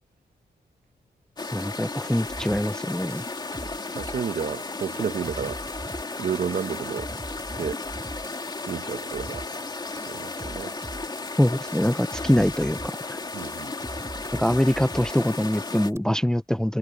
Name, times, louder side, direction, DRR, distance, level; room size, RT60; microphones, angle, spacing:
sound 1, 1.4-15.9, left 3 dB, 25° left, 2.9 m, -34 dB
voice 1, 1.5-3.2 11.4-13.2 14.3-16.8, left 1 dB, 5° left, 0.6 m, -24 dB
sound 2, 2.3-16.0, right 2 dB, 15° right, 4.4 m, -42 dB
voice 2, 3.9-5.6 6.2-7.1 7.6-7.8 8.7-9.7 10.1-10.7 13.3-13.7, right 7 dB, 55° right, 1.6 m, -31 dB
wide cardioid pair, 140°, 17 cm